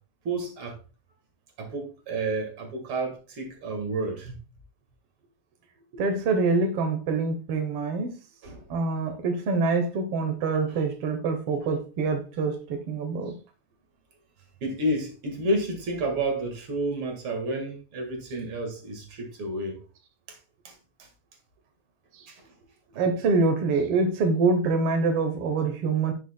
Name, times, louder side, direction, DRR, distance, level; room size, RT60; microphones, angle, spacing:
voice 1, 0.2-0.8 1.6-4.4 8.4-8.6 14.6-19.8 20.3-20.4 20.6-20.7 22.3-22.5, right 1 dB, 45° right, 2.1 m, -30 dB
voice 2, 5.9-8.2 8.7-13.4 22.9-26.1, right 4 dB, 85° right, 1.2 m, -25 dB
10.5 x 6.4 x 2.2 m
omnidirectional pair, 4.0 m